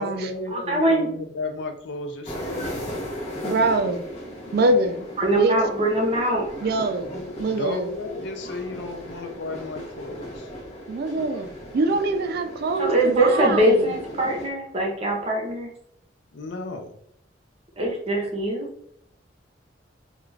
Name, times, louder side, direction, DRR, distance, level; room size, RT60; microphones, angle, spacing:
voice 1, 0.0-2.9 7.0-10.5 16.3-17.0, left 3 dB, 85° left, 5 dB, 0.5 m, -34 dB
voice 2, 0.5-1.1 5.2-6.7 12.8-15.7 17.8-18.7, right 1 dB, 35° right, 1 dB, 0.7 m, -22 dB
atmos trainjourney, 2.2-14.5, equal, 40° left, 0.8 m, -37 dB
voice 3, 3.4-4.0 4.5-5.1 5.3-5.6 6.6-7.1 7.4-7.9 10.9-11.5 11.7-13.8, right 2 dB, 60° right, 7 dB, 0.3 m, -23 dB
2.4 x 2.3 x 3.1 m, 0.68 s
head